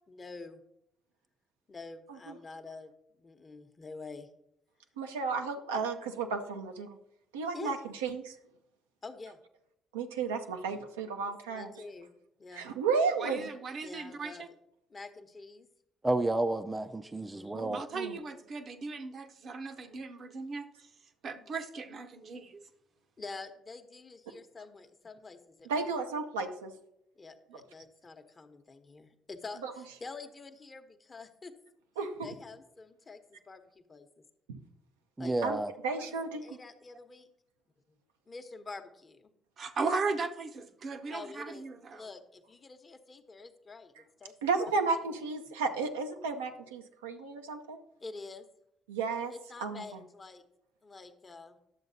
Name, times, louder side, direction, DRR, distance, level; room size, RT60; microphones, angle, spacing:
voice 1, 0.1-0.6 1.7-4.3 7.5-7.7 9.0-9.4 11.3-12.1 12.4-12.7 13.8-14.4 14.9-15.7 17.1-17.7 23.2-25.9 27.2-31.5 32.2-34.1 35.2-35.4 36.0-37.3 38.3-39.3 41.1-44.3 44.6-44.7 45.5-45.8 48.0-48.5 49.3-50.4 50.8-51.6, left 3 dB, 35° left, 8 dB, 0.9 m, -47 dB
voice 2, 5.0-7.0 7.3-7.8 8.0-8.3 9.9-11.7 12.5-13.5 17.5-18.2 25.7-26.7 29.6-29.7 32.0-32.3 34.5-34.6 35.4-35.6 35.8-36.6 44.4-47.8 48.9-49.3 49.6-50.0, right 4 dB, 90° right, 4 dB, 0.6 m, -33 dB
voice 3, 13.2-14.5 17.7-20.7 21.2-22.6 39.6-42.1, right 4 dB, 50° right, 7 dB, 0.7 m, -37 dB
voice 4, 16.0-17.8 35.2-35.7, right 2 dB, 20° right, 8 dB, 0.4 m, -31 dB
11.0 x 7.1 x 2.7 m, 0.80 s
hypercardioid pair, 50°, 0 cm